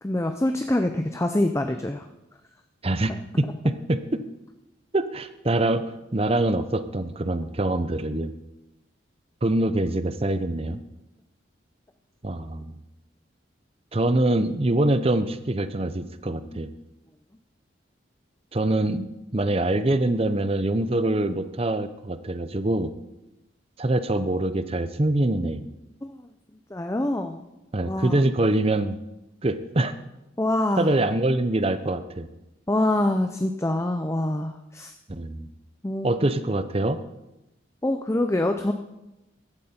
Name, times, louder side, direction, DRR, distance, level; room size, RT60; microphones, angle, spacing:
voice 1, 0.0-2.1 16.5-16.6 26.0-26.1 26.7-27.4 27.8-28.3 30.4-30.9 32.7-34.9 35.8-36.2 37.8-38.7, left 1 dB, 15° left, 6 dB, 0.5 m, -25 dB
voice 2, 3.4-4.2 4.9-8.3 9.4-10.8 12.2-12.8 13.9-16.7 18.5-22.9 23.8-25.7 27.7-29.0 29.4-29.9 30.8-32.3 35.1-35.5 36.0-37.0, right 1 dB, 30° right, 12 dB, 0.7 m, -24 dB
15.5 x 12.5 x 4.4 m, 0.97 s
head